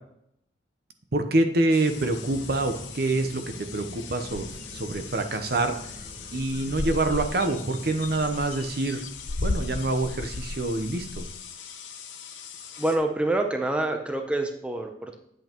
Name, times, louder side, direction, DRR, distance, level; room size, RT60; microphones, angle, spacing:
voice 1, 1.1-5.8 6.3-9.0 9.4-11.3, right 2 dB, 55° right, 7 dB, 0.8 m, -26 dB
sound 1, 1.7-13.0, left 8 dB, 90° left, 1.0 m, -43 dB
sound 2, 1.9-8.3, equal, 25° right, 1.3 m, -45 dB
sound 3, 4.3-5.1 5.5-5.6 5.8-6.1 6.4-11.4, left 2 dB, 40° left, 0.4 m, -35 dB
voice 2, 12.8-15.2, right 2 dB, 5° right, 4 dB, 0.6 m, -26 dB
8.9 x 7.9 x 3.0 m, 0.74 s
head